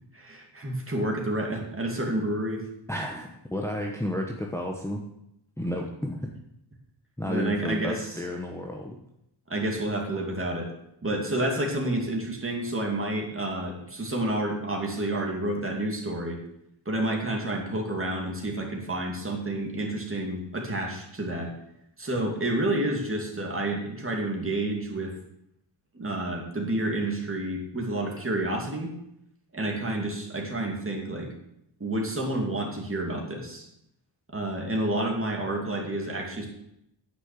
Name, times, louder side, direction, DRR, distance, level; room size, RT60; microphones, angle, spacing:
voice 1, 0.1-2.6 7.3-8.0 9.5-10.7 11.0-16.4 16.9-21.5 22.0-25.1 25.9-28.9 29.5-31.3 31.8-33.7 34.3-36.5, right 1 dB, 25° right, 1 dB, 2.7 m, -29 dB
voice 2, 2.9-5.0 5.6-6.3 7.2-9.0, left 1 dB, 5° left, 0 dB, 1.1 m, -32 dB
10.0 x 6.3 x 8.4 m, 0.80 s
wide cardioid pair, 125°, 47 cm